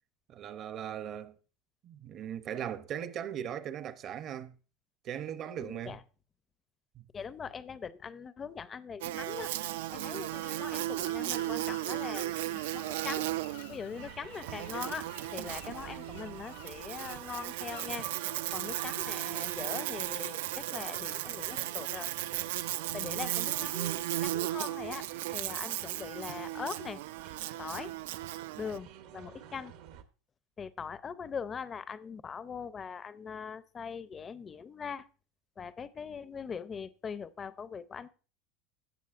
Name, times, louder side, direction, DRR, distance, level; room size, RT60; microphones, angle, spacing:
voice 1, 0.3-1.3 1.8-4.5 5.0-6.0 7.0-7.1, right 9 dB, 35° right, 0.6 m, -39 dB
voice 2, 5.6-6.0 7.1-9.5 9.9-13.3 13.7-18.1 18.5-22.1 22.9-27.0 27.6-27.9 28.6-29.7 30.6-35.1 35.6-38.1, left 6 dB, 20° left, 0.4 m, -41 dB
Buzz, 9.0-28.8, right 15 dB, 85° right, 0.3 m, -36 dB
sound 1, 10.0-20.4, left 13 dB, 75° left, 0.8 m, -55 dB
sound 2, 14.0-30.0, right 11 dB, 65° right, 0.8 m, -49 dB
16.0 x 6.3 x 2.4 m
supercardioid pair, 150°, 0 cm